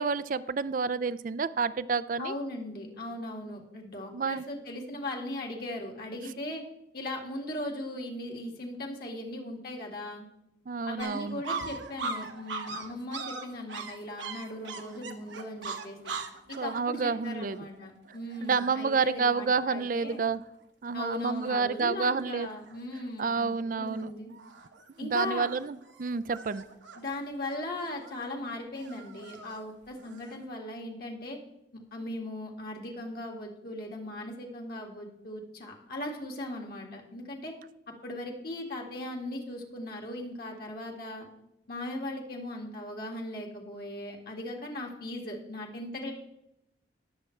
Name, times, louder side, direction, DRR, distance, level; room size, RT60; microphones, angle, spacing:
voice 1, 0.0-2.4 4.1-4.5 10.7-11.4 16.6-17.7 18.4-20.4 20.8-22.5 23.2-24.1 25.0-26.6, right 5 dB, 45° right, 16 dB, 0.4 m, -29 dB
voice 2, 2.2-6.6 6.9-10.2 10.9-16.0 16.5-20.2 20.9-24.3 25.0-25.5 26.9-31.4 31.7-37.5 38.0-41.3 41.7-46.1, left 1 dB, 50° left, 1 dB, 2.0 m, -38 dB
sound 1, 11.0-20.4 20.9-21.0 21.2-21.9 22.1-22.8 23.3-23.6 23.9-30.5, right 4 dB, 75° right, 1.2 m, -41 dB
19.5 x 7.4 x 3.2 m, 0.84 s
head